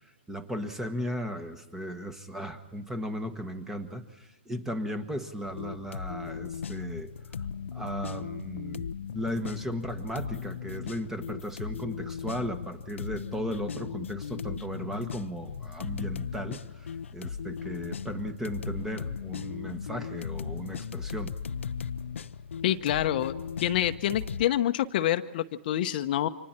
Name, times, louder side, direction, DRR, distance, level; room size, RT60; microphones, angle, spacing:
voice 1, 0.3-7.1 7.7-21.3, equal, 5° right, 10 dB, 1.4 m, -36 dB
sound 1, 5.4-24.4, left 6 dB, 85° left, 0.7 m, -37 dB
voice 2, 22.6-26.3, left 12 dB, 50° left, 9 dB, 0.9 m, -27 dB
29.5 x 25.5 x 4.4 m, 1.1 s
hypercardioid pair, 145°, 7 cm